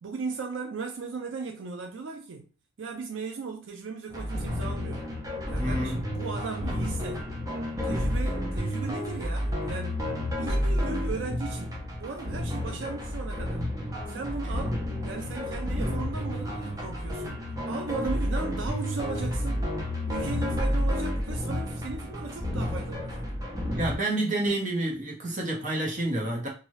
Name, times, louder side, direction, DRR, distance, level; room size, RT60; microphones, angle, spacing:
voice 1, 0.0-2.5 2.8-5.0 5.5-7.3 7.8-10.0 10.4-13.6 14.1-19.7 20.1-23.3, right 4 dB, 75° right, 0.4 m, -37 dB
sound 1, 4.1-24.0, equal, 20° right, 0.6 m, -30 dB
voice 2, 5.6-6.0 23.7-26.5, right 1 dB, 40° right, 0.9 m, -29 dB
2.7 x 2.3 x 3.1 m
head